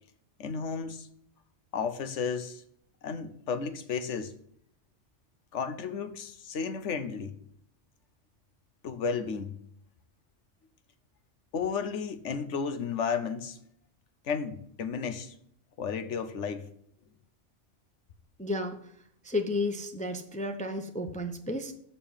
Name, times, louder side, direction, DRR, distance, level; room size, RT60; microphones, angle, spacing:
voice 1, 0.4-1.1 1.7-2.6 3.0-4.3 5.5-7.3 8.8-9.6 11.5-13.6 14.2-15.3 15.8-16.7, left 6 dB, 80° left, 1.1 m, -33 dB
voice 2, 18.4-18.8 19.2-21.7, left 2 dB, 10° left, 0.6 m, -32 dB
6.8 x 5.7 x 7.2 m
omnidirectional pair, 1.2 m